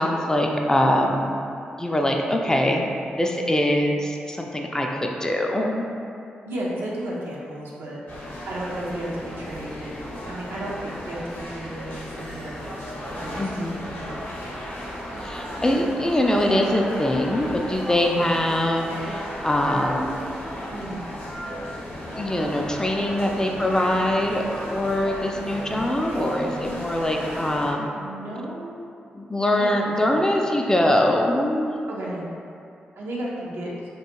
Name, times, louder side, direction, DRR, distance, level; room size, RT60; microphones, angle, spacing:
voice 1, 0.0-1.3 1.8-5.8 13.4-13.7 15.2-20.2 22.1-27.9 29.1-31.8, left 1 dB, 15° left, 1 dB, 0.3 m, -23 dB
voice 2, 6.5-14.3 18.1-18.3 20.7-21.0 23.3-23.6 25.9-27.1 27.9-28.8 29.5-30.3 31.9-32.3 33.0-33.7, right 1 dB, 75° right, -5 dB, 0.5 m, -34 dB
sound 1, 8.1-27.7, equal, 65° left, 0.6 m, -35 dB
2.4 x 2.2 x 2.9 m, 2.5 s
supercardioid pair, 40°, 4 cm